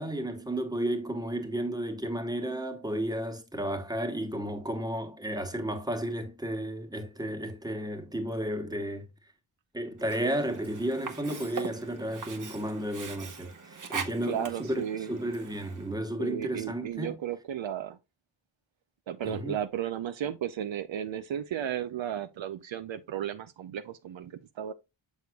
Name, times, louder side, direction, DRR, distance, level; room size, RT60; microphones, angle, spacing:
voice 1, 0.0-9.1 9.7-17.2 19.2-19.6, right 1 dB, 10° right, 1.2 m, -33 dB
Sink (filling or washing), 10.0-15.9, right 5 dB, 40° right, 1.0 m, -41 dB
voice 2, 14.3-15.1 16.2-18.0 19.1-24.7, right 9 dB, 65° right, 0.6 m, -34 dB
6.8 x 6.3 x 2.3 m
wide cardioid pair, 115°, 49 cm